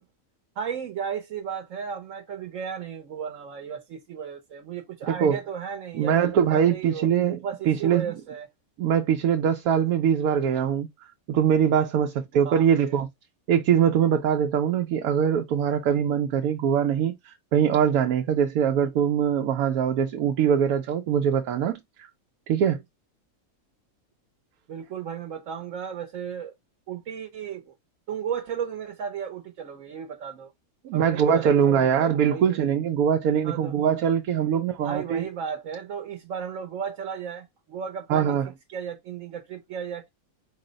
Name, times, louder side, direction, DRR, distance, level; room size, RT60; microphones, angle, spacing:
voice 1, 0.6-7.1 7.4-8.5 12.4-13.0 24.7-26.5 26.9-27.7 28.1-30.5 30.9-32.6 33.4-33.7 34.5-38.4 38.7-40.1, right 7 dB, 70° right, 1.1 m, -35 dB
voice 2, 5.1-5.4 5.9-8.2 8.8-10.9 11.3-13.1 13.5-21.8 22.5-22.8 30.8-35.3 38.1-38.5, right 8 dB, 90° right, 1.0 m, -22 dB
4.7 x 2.1 x 3.7 m
omnidirectional pair, 1.5 m